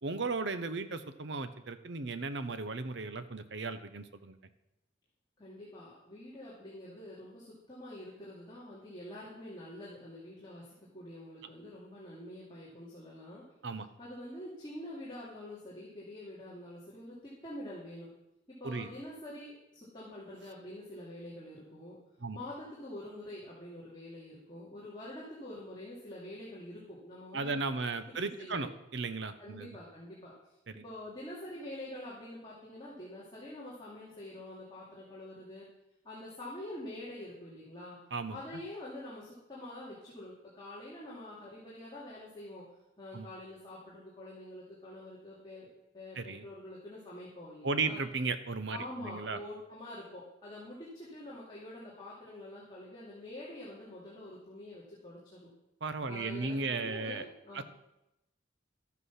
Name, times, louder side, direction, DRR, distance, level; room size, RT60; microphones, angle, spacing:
voice 1, 0.0-4.4 13.6-13.9 18.6-18.9 22.2-22.4 27.3-29.8 30.7-30.8 38.1-38.4 43.1-43.3 46.2-46.4 47.6-49.4 55.8-57.2 57.5-57.6, right 4 dB, 70° right, 10 dB, 0.9 m, -35 dB
voice 2, 5.4-13.4 14.0-18.1 18.5-22.0 22.3-27.6 28.1-28.7 29.4-30.3 30.8-35.7 36.0-38.0 38.3-42.7 43.0-48.0 48.7-55.5 56.1-57.6, left 1 dB, 25° left, -7 dB, 2.4 m, -46 dB
13.0 x 8.3 x 5.7 m, 0.91 s
head